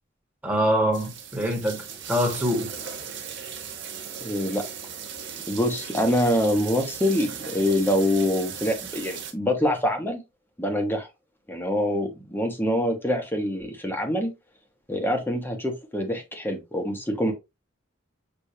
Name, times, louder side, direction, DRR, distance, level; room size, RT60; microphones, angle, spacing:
voice 1, 0.4-2.7, equal, 10° right, 1.5 m, -24 dB
sound 1, 0.9-9.3, right 7 dB, 65° right, 1.0 m, -37 dB
voice 2, 4.2-4.6 5.5-10.2 10.6-11.1 11.5-14.3 14.9-17.3, left 1 dB, 10° left, 1.1 m, -25 dB
6.6 x 2.6 x 2.7 m
head